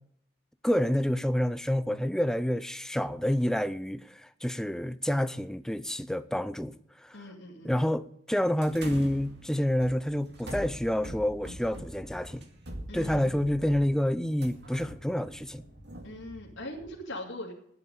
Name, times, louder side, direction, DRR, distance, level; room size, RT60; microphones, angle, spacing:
voice 1, 0.6-7.2 7.6-12.4 12.9-15.6, equal, 5° left, 0.4 m, -28 dB
voice 2, 7.1-7.8 12.9-13.5 16.0-17.5, left 1 dB, 70° left, 2.5 m, -41 dB
sound 1, 8.6-16.9, equal, 55° right, 2.3 m, -44 dB
11.0 x 8.1 x 9.1 m
head